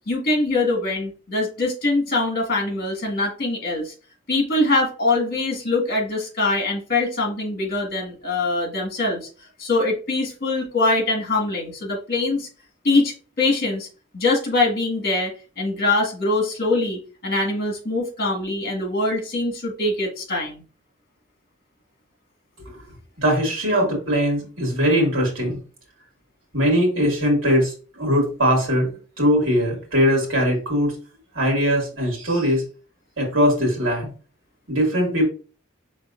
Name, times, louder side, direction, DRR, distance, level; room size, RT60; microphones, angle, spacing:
voice 1, 0.0-3.9 4.3-9.2 9.6-12.5 12.8-13.9 14.1-20.6, left 2 dB, 50° left, 0 dB, 1.8 m, -23 dB
voice 2, 23.2-25.6 26.5-30.9 31.3-32.6 33.2-34.1 34.7-35.3, equal, 80° right, -1 dB, 2.4 m, -20 dB
5.2 x 3.9 x 2.6 m, 0.36 s
head